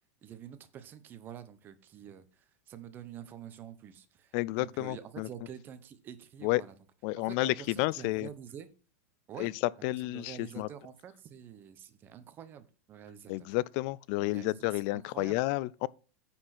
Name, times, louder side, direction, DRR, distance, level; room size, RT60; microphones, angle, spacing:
voice 1, 0.2-6.7 7.3-8.7 9.3-9.5 9.9-13.5 14.2-15.4, right 9 dB, 25° right, 0.9 m, -47 dB
voice 2, 4.3-5.3 6.4-6.6 7.0-8.3 9.4-9.5 9.8-10.7 13.3-15.9, left 20 dB, 45° left, 0.3 m, -31 dB
9.7 x 4.4 x 5.9 m
supercardioid pair, 150°, 8 cm